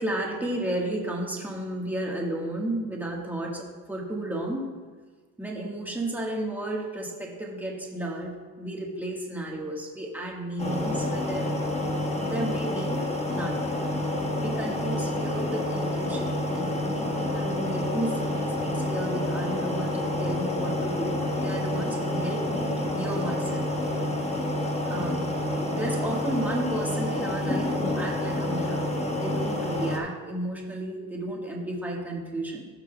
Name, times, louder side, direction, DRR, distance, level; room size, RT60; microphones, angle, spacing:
voice 1, 0.0-4.7 5.4-11.6 12.2-13.9 14.4-23.7 24.9-25.3 25.6-32.7, right 1 dB, 5° right, -2 dB, 1.4 m, -33 dB
sound 1, 10.6-30.0, left 1 dB, 15° left, 1.0 m, -28 dB
16.5 x 6.0 x 2.3 m, 1.4 s
cardioid pair, 115°, 42 cm